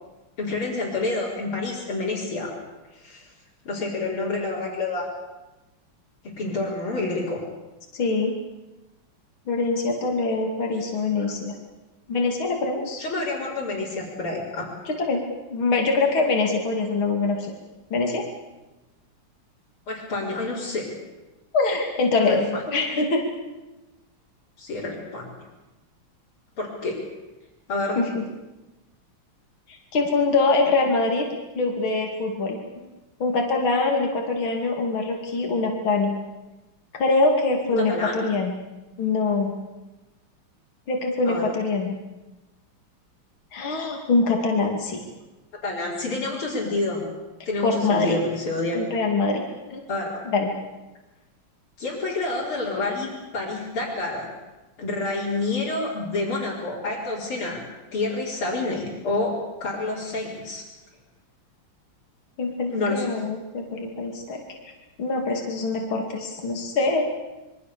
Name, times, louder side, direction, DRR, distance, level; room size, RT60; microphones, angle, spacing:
voice 1, 0.4-2.5 3.0-3.2 3.7-5.1 6.2-7.4 13.0-14.7 19.9-20.9 22.2-22.6 24.6-25.3 26.6-27.0 27.7-28.0 37.7-38.2 41.3-41.5 45.6-47.0 47.5-48.8 49.9-50.2 51.8-54.3 54.8-57.6 57.9-60.6 62.7-63.1, left 2 dB, 85° left, -7 dB, 5.6 m, -28 dB
voice 2, 7.9-8.4 9.5-11.6 12.1-13.0 14.9-15.2 15.5-17.5 17.9-18.3 21.5-23.3 28.0-28.2 29.7-31.3 31.6-32.9 33.2-36.2 36.9-38.5 39.0-39.5 40.9-41.9 43.5-45.0 47.6-48.2 48.7-49.4 49.7-49.8 50.3-50.5 62.4-64.4 65.0-67.1, left 3 dB, 70° left, 2 dB, 3.4 m, -24 dB
26.5 x 23.5 x 6.9 m, 1.1 s
omnidirectional pair, 2.3 m